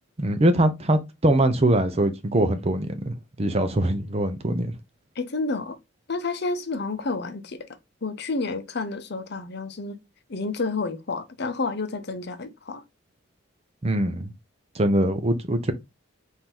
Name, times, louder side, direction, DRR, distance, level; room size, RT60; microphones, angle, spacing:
voice 1, 0.2-4.7 13.8-14.3 14.7-15.7, right 1 dB, 30° right, 0.6 m, -22 dB
voice 2, 5.2-5.8 6.1-7.7 8.0-10.0 10.3-12.8, left 3 dB, 55° left, 0.7 m, -30 dB
4.5 x 2.7 x 3.7 m
head